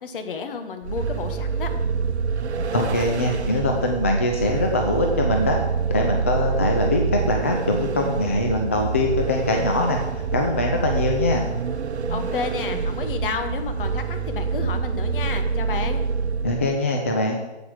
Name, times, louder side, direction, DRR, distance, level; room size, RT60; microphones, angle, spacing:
voice 1, 0.0-1.7 12.1-16.0, left 5 dB, 50° left, 7 dB, 1.6 m, -31 dB
Vehicle, 0.8-16.8, right 5 dB, 70° right, 1.0 m, -26 dB
voice 2, 2.7-5.6 5.9-10.0 10.3-11.5 16.4-17.4, left 2 dB, 15° left, 1 dB, 0.3 m, -22 dB
8.2 x 7.8 x 7.4 m, 1.0 s
hypercardioid pair, 140°, 34 cm